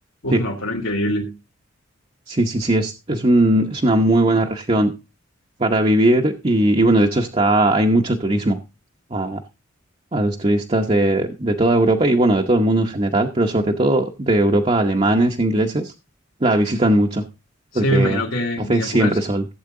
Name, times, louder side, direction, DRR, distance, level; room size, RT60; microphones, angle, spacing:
voice 1, 0.2-1.3 17.7-19.2, equal, 80° left, -4 dB, 2.3 m, -23 dB
voice 2, 2.3-4.9 5.6-8.6 9.1-9.4 10.1-15.9 16.4-17.2 17.7-18.2 18.6-19.5, right 1 dB, 30° right, 3 dB, 0.9 m, -18 dB
16.0 x 8.0 x 3.8 m, 0.30 s
head